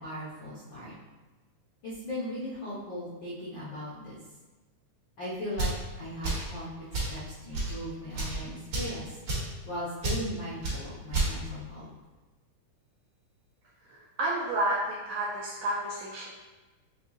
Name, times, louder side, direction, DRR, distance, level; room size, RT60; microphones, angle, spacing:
voice 1, 0.0-0.9 1.8-4.2 5.2-9.2 9.6-11.9, left 1 dB, 85° left, -8 dB, 1.0 m, -38 dB
sound 1, 5.5-5.8 6.2-6.5 6.9-7.2 7.5-7.7 8.1-8.4 8.7-8.9 9.3-9.5 10.0-10.2 10.6-10.8 11.1-11.3, right 2 dB, 45° right, 1.7 m, -30 dB
voice 2, 13.9-16.3, right 1 dB, 80° right, -5 dB, 1.5 m, -31 dB
5.4 x 2.3 x 3.6 m, 1.2 s
omnidirectional pair, 3.5 m